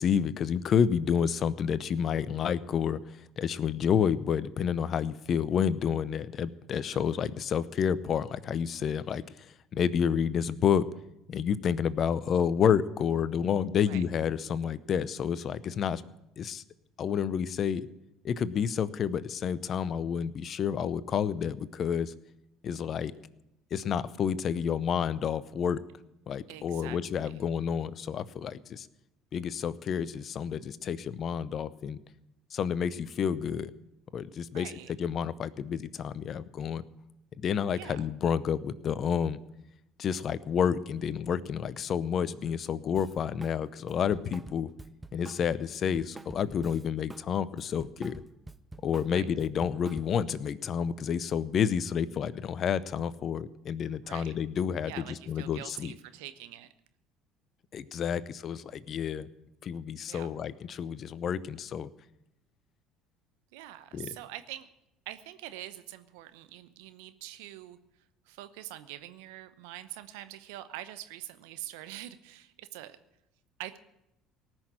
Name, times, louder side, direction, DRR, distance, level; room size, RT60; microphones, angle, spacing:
voice 1, 0.0-3.0 3.4-9.2 9.7-10.8 11.3-16.0 16.4-16.6 17.0-17.9 18.2-22.1 22.6-23.1 23.7-25.8 26.3-28.9 29.3-32.0 32.5-33.7 34.1-34.7 35.0-36.8 37.4-39.4 40.0-44.7 45.1-48.2 48.8-54.9 55.3-55.9 57.7-59.3 59.6-61.9 63.9-64.1, left 7 dB, 45° left, 17 dB, 0.7 m, -29 dB
voice 2, 6.9-7.3 13.8-14.0 26.5-27.3 34.5-34.9 37.7-38.0 49.1-49.3 53.9-54.3 54.9-56.7 60.1-60.3 63.5-64.7 65.1-67.8 68.2-73.0 73.6-73.8, right 14 dB, 75° right, 12 dB, 0.8 m, -44 dB
Drum kit, 43.0-43.6 43.9-47.3 47.6-50.3, right 2 dB, 15° right, 0.6 m, -47 dB
18.5 x 6.3 x 8.8 m, 0.86 s
hypercardioid pair, 60°, 0 cm